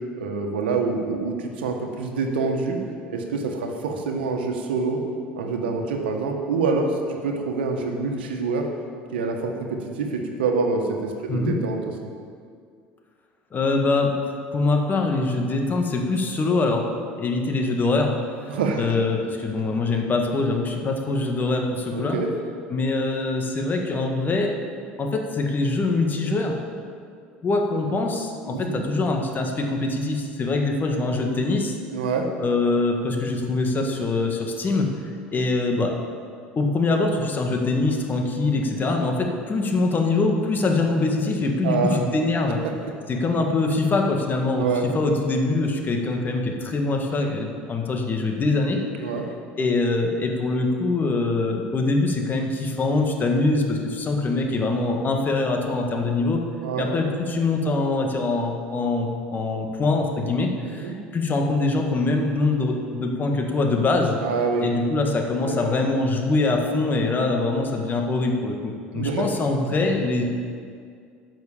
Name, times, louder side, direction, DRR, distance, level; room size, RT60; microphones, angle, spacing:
voice 1, 0.1-2.8 3.1-5.0 5.4-8.7 9.1-11.8 18.5-19.0 21.9-22.3 28.5-28.8 31.9-32.3 41.6-42.0 42.8-42.9 44.6-44.9 49.0-49.2 56.6-56.9 60.6-61.0 64.2-64.7 65.5-65.6 68.9-69.3, right 4 dB, 85° right, 3 dB, 1.4 m, -26 dB
voice 2, 13.5-14.1 14.5-16.9 17.2-18.1 18.4-22.2 22.7-24.6 25.0-26.9 27.4-31.7 32.4-34.9 35.3-36.0 36.5-42.6 43.1-44.7 44.9-48.8 49.6-56.4 56.8-64.2 64.6-70.2, left 3 dB, 35° left, 2 dB, 1.8 m, -23 dB
10.5 x 6.3 x 7.2 m, 2.2 s
hypercardioid pair, 75°, 5 cm